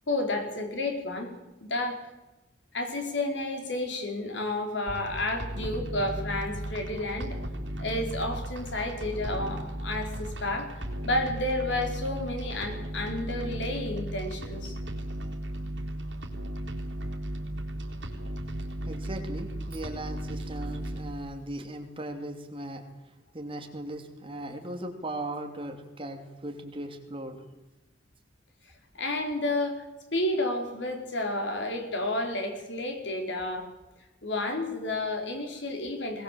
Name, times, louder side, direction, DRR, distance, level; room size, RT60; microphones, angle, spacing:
voice 1, 0.1-1.3 1.6-2.1 2.7-7.4 7.8-10.7 11.0-14.8 28.9-29.8 30.1-33.7 34.2-36.2, left 2 dB, 75° left, 3 dB, 4.9 m, -31 dB
sound 1, 4.9-21.1, right 1 dB, 85° right, 3.7 m, -36 dB
voice 2, 18.8-22.8 23.3-27.4, right 1 dB, 30° right, 4 dB, 2.9 m, -38 dB
21.5 x 19.0 x 7.7 m, 1.0 s
head